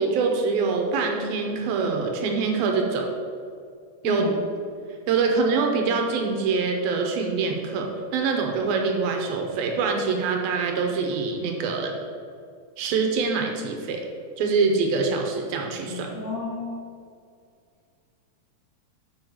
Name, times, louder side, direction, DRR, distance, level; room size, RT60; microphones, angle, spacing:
voice 1, 0.0-3.1 4.0-4.3 5.1-12.0 12.8-14.1 14.4-16.1, right 4 dB, 75° right, 3 dB, 2.5 m, -24 dB
voice 2, 4.0-4.4 15.9-16.7, left 3 dB, 60° left, -6 dB, 1.7 m, -31 dB
6.2 x 5.9 x 6.3 m, 2.2 s
omnidirectional pair, 4.5 m